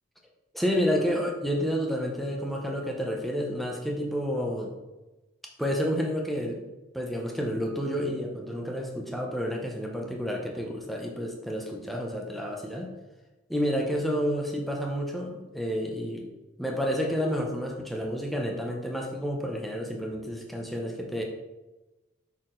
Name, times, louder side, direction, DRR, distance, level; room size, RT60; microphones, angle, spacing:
voice 1, 0.5-4.7 5.6-6.7 6.9-12.9 13.5-16.3 16.6-21.2, equal, ahead, 0 dB, 0.7 m, -30 dB
6.2 x 4.3 x 3.8 m, 1.1 s
head